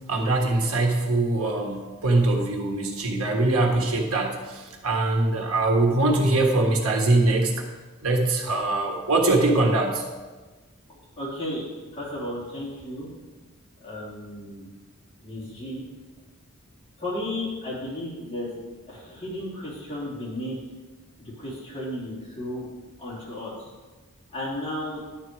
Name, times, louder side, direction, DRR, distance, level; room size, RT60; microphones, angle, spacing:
voice 1, 0.1-7.7 8.0-10.0, right 2 dB, 80° right, 1 dB, 1.5 m, -22 dB
voice 2, 10.9-11.6 11.9-13.1 13.8-14.7 15.2-15.8 17.0-18.5 18.9-20.6 21.2-22.7 23.0-23.7 24.3-25.0, left 1 dB, 25° left, -7 dB, 3.4 m, -34 dB
11.0 x 7.4 x 4.7 m, 1.3 s
head